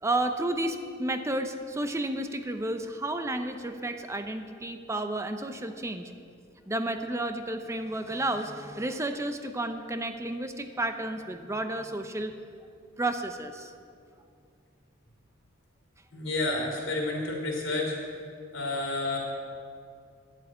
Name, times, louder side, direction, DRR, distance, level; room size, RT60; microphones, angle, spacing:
voice 1, 0.0-6.1 6.7-12.3 13.0-13.7, right 1 dB, 15° right, 7 dB, 0.6 m, -31 dB
voice 2, 16.1-18.0 18.5-19.2, left 2 dB, 75° left, 0 dB, 3.2 m, -30 dB
11.0 x 8.0 x 8.7 m, 2.3 s
head